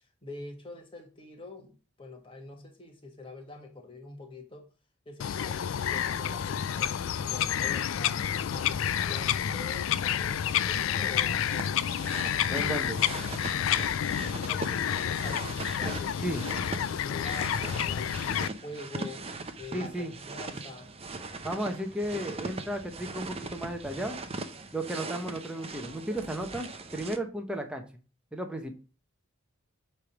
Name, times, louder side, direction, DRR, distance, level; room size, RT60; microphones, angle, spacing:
voice 1, 0.2-1.7 2.0-4.6 5.0-8.2 8.5-11.9 14.2-19.2 19.6-20.9, left 2 dB, 25° left, 1.6 m, -45 dB
Bird vocalization bird call bird song, 5.2-18.5, left 9 dB, 70° left, 0.4 m, -29 dB
sound 1, 11.5-27.2, right 3 dB, 30° right, 0.7 m, -40 dB
voice 2, 12.5-13.0 16.2-16.4 19.7-20.1 21.4-24.2 24.7-27.8 28.3-28.8, right 1 dB, 5° right, 1.0 m, -34 dB
8.3 x 3.4 x 6.0 m
head